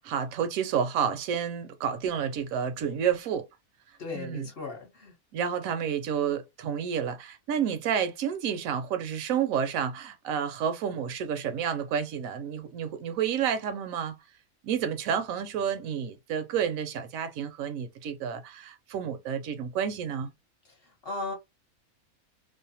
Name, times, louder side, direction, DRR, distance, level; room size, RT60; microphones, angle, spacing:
voice 1, 0.0-3.5 4.1-4.5 5.3-14.1 14.6-20.3, right 8 dB, 70° right, 0.9 m, -30 dB
voice 2, 4.0-5.1 21.0-21.3, left 3 dB, 45° left, 1.0 m, -36 dB
2.6 x 2.1 x 2.7 m
omnidirectional pair, 1.6 m